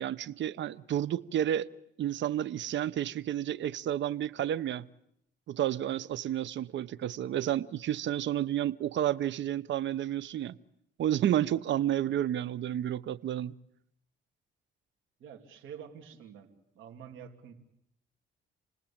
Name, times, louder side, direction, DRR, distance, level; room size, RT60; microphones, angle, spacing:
voice 1, 0.0-1.7 2.0-4.9 5.5-10.6 11.0-13.5, right 11 dB, 65° right, 19 dB, 0.9 m, -31 dB
voice 2, 15.2-16.5 16.7-17.5, right 8 dB, 85° right, 4 dB, 3.1 m, -47 dB
29.5 x 19.5 x 8.8 m, 0.77 s
cardioid pair, 90°, 20 cm